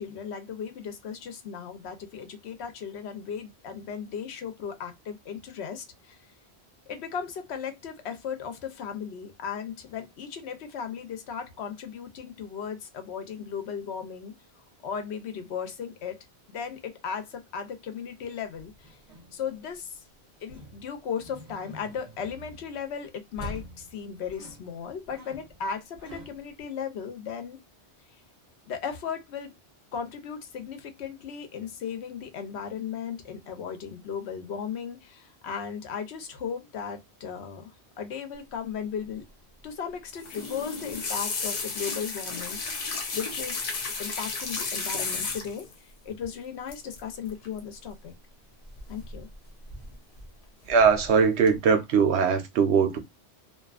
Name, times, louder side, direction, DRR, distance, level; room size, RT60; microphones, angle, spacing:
voice 1, 0.0-6.2 6.9-14.3 14.8-19.0 19.3-20.0 20.4-27.6 28.7-29.6 29.9-39.2 39.6-42.6 43.1-48.1 48.9-49.3, left 7 dB, 80° left, 0.9 m, -36 dB
sound 1, 18.6-19.9 20.5-22.9 23.4-26.6, equal, 40° right, 1.2 m, -46 dB
sound 2, 40.1-45.7 46.7-47.0 47.3-47.6 48.8-49.3 49.7-50.2 50.7-51.1 51.5-51.6, left 4 dB, 40° left, 0.6 m, -33 dB
voice 2, 50.7-53.0, right 6 dB, 80° right, 0.9 m, -21 dB
2.6 x 2.2 x 2.3 m
omnidirectional pair, 1.1 m